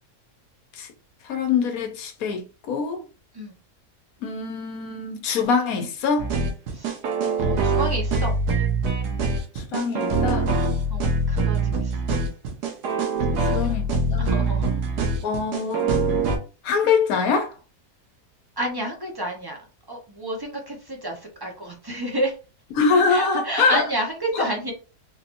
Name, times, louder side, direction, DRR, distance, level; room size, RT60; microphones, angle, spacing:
voice 1, 1.2-3.0 4.2-6.3 9.5-10.5 13.4-14.5 15.2-15.9 16.6-17.5 22.8-23.8 24.3-24.5, left 5 dB, 65° left, 1.2 m, -24 dB
sound 1, 6.2-16.4, right 3 dB, 85° right, 1.4 m, -23 dB
voice 2, 7.4-8.4 10.6-11.9 13.3-13.7 14.2-14.7 18.6-19.6 19.9-22.3 23.1-24.7, right 1 dB, 20° right, 0.6 m, -30 dB
4.0 x 2.9 x 2.6 m
omnidirectional pair, 1.7 m